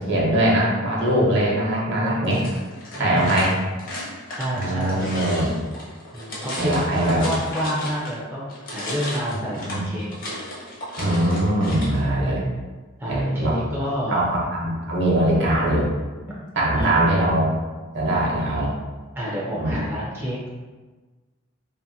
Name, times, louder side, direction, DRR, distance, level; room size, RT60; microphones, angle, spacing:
voice 1, 0.0-2.4 3.0-3.5 4.5-5.6 6.6-7.2 9.6-9.8 11.0-12.4 13.1-13.6 14.1-15.9 16.6-17.5 17.9-18.7 19.5-19.8, right 1 dB, 60° right, -4 dB, 0.8 m, -21 dB
sound 1, 2.2-8.2 8.5-12.0, equal, 40° left, 0.7 m, -34 dB
voice 2, 3.0-3.5 4.3-5.2 6.1-10.1 13.0-14.3 16.7-17.3 19.2-20.5, equal, 10° right, -6 dB, 0.4 m, -29 dB
2.6 x 2.5 x 2.6 m, 1.3 s
head